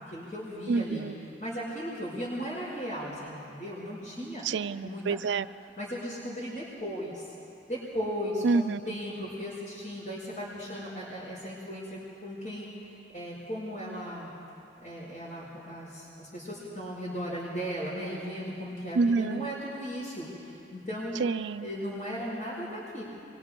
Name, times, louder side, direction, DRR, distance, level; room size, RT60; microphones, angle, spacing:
voice 1, 0.1-1.1 1.4-4.4 4.8-5.2 5.8-7.2 7.7-12.7 13.1-14.3 14.8-20.3 20.7-21.2 21.6-23.0, equal, 55° left, -10 dB, 6.1 m, -36 dB
voice 2, 0.7-1.3 4.4-5.5 8.4-9.0 19.0-19.5 21.2-21.7, right 4 dB, 80° right, 15 dB, 0.4 m, -28 dB
30.0 x 24.0 x 3.8 m, 2.7 s
head